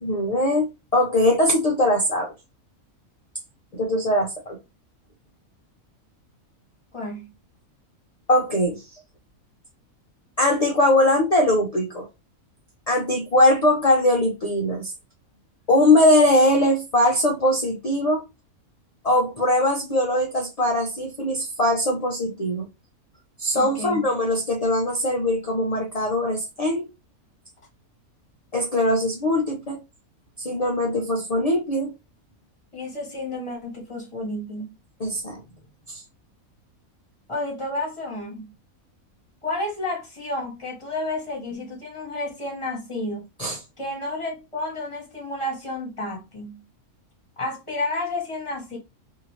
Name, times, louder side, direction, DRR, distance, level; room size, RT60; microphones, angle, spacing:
voice 1, 0.0-2.3 3.7-4.6 8.3-8.8 10.4-12.1 12.9-14.9 15.7-18.2 19.0-22.7 23.4-26.9 28.5-29.8 30.4-31.9 35.0-35.4 35.9-36.0 43.4-43.6, left 1 dB, 60° left, 0.4 m, -21 dB
voice 2, 6.9-7.3 23.5-24.1 32.7-34.7 37.3-38.5 39.4-43.3 43.8-46.6 47.4-48.8, left 2 dB, 25° left, 0.8 m, -31 dB
2.7 x 2.6 x 3.0 m
omnidirectional pair, 1.5 m